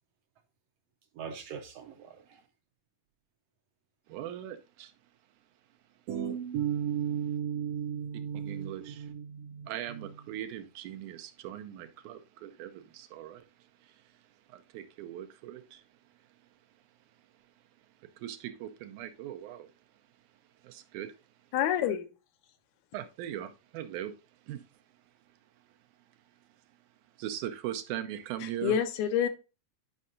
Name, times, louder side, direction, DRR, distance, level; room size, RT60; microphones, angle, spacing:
voice 1, 1.2-2.4 6.1-10.1, right 8 dB, 75° right, 1.5 m, -35 dB
voice 2, 4.1-4.9 8.5-9.0 9.7-13.4 14.5-15.8 18.2-19.7 20.6-21.1 22.9-24.1 24.5-24.6 27.2-28.8, right 11 dB, 90° right, 2.2 m, -40 dB
voice 3, 21.5-22.1 28.4-29.3, left 9 dB, 80° left, 2.1 m, -28 dB
10.5 x 5.4 x 2.5 m
omnidirectional pair, 3.4 m